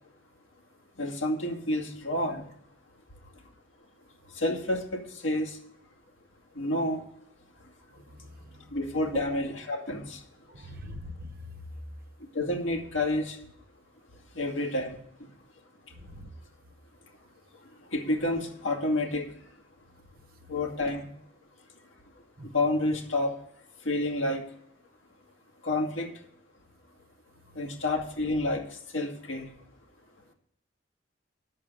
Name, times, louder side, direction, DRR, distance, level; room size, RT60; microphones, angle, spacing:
voice 1, 1.0-2.4 4.4-5.6 6.6-7.0 8.7-10.2 12.3-13.4 14.4-15.0 17.9-19.3 20.5-21.1 22.4-23.4 23.8-24.4 25.6-26.1 27.6-28.6 28.9-29.5, left 1 dB, 80° left, 2 dB, 2.2 m, -29 dB
voice 2, 8.1-8.8 10.5-11.3 16.0-16.3 22.4-22.5, left 1 dB, 50° right, 5 dB, 0.9 m, -43 dB
8.8 x 6.8 x 8.7 m, 0.71 s
head